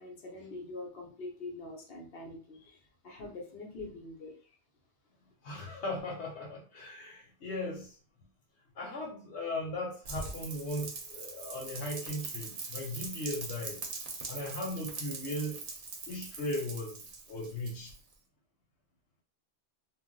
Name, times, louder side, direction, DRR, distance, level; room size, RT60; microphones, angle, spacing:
voice 1, 0.0-4.3, left 2 dB, 65° left, 0 dB, 1.0 m, -44 dB
voice 2, 5.4-8.0 8.8-13.8 14.3-15.6 16.1-17.0 17.3-17.9, left 1 dB, 90° left, 1 dB, 1.1 m, -37 dB
Rain, 10.0-18.1, right 4 dB, 55° right, 0.8 m, -42 dB
2.5 x 2.0 x 3.7 m, 0.40 s
omnidirectional pair, 1.1 m